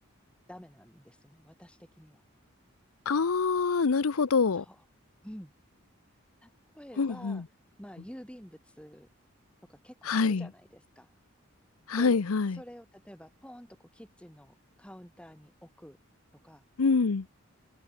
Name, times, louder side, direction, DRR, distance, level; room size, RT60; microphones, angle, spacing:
voice 1, 0.5-2.2 4.5-4.9 5.2-5.5 6.4-7.5 7.8-9.1 9.7-11.1 11.9-12.2 12.5-16.0 16.4-16.6, equal, 5° left, 2.0 m, -49 dB
voice 2, 3.1-4.6 7.0-7.4 10.1-10.5 11.9-12.6 16.8-17.2, left 4 dB, 85° left, 0.7 m, -25 dB
open air
head